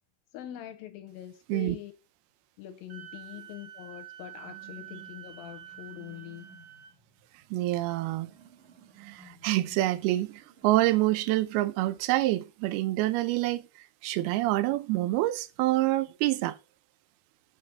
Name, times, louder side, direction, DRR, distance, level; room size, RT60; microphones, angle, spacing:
voice 1, 0.3-1.9 2.6-6.5, left 12 dB, 80° left, 2.2 m, -43 dB
Wind instrument woodwind instrument, 2.9-6.9, right 12 dB, 60° right, 2.3 m, -47 dB
sound 1, 4.3-12.1, right 5 dB, 40° right, 0.9 m, -56 dB
voice 2, 7.5-8.3 9.0-13.7 14.0-16.6, right 17 dB, 80° right, 2.4 m, -27 dB
6.7 x 5.9 x 5.2 m
omnidirectional pair, 4.7 m